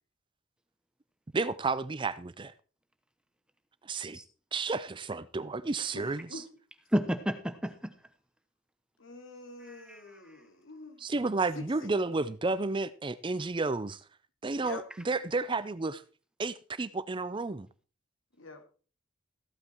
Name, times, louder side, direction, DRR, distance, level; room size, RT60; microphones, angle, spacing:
voice 1, 1.3-2.5 3.8-4.2 4.5-6.4 11.0-14.0 14.4-16.0 16.4-17.7, right 3 dB, 25° right, 0.5 m, -32 dB
voice 2, 5.9-6.5 9.0-11.0 11.5-12.1 14.6-15.2 18.4-18.6, left 2 dB, 70° left, 2.5 m, -46 dB
voice 3, 6.9-7.9 9.6-10.4, equal, 5° right, 0.9 m, -32 dB
14.5 x 8.7 x 4.5 m
head